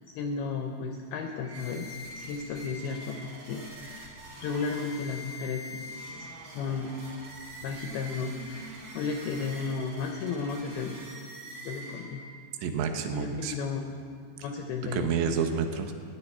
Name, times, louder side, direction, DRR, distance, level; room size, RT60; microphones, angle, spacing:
voice 1, 0.2-6.9 7.6-10.9 11.6-12.2 13.1-13.8 14.3-15.1, left 5 dB, 80° left, 3 dB, 2.3 m, -34 dB
sound 1, 1.4-12.5, equal, 50° right, 1.4 m, -44 dB
voice 2, 12.6-13.5 14.9-15.9, right 6 dB, 80° right, 6 dB, 3.0 m, -29 dB
15.0 x 6.0 x 9.6 m, 2.3 s
omnidirectional pair, 5.3 m